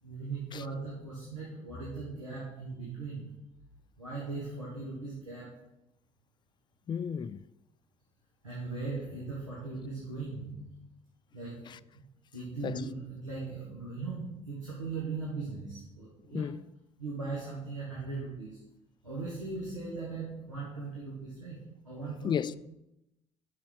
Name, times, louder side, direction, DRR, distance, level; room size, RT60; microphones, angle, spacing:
voice 1, 0.0-3.4 4.0-5.7 8.4-10.8 11.3-11.7 12.3-16.5 17.0-18.6 19.0-22.6, right 3 dB, 90° right, 1.6 m, -39 dB
voice 2, 6.9-7.5 11.7-11.8 12.6-12.8 16.3-16.6 22.2-22.6, left 8 dB, 30° left, 0.4 m, -33 dB
6.3 x 5.8 x 6.2 m
figure-of-eight pair, 50°, 16 cm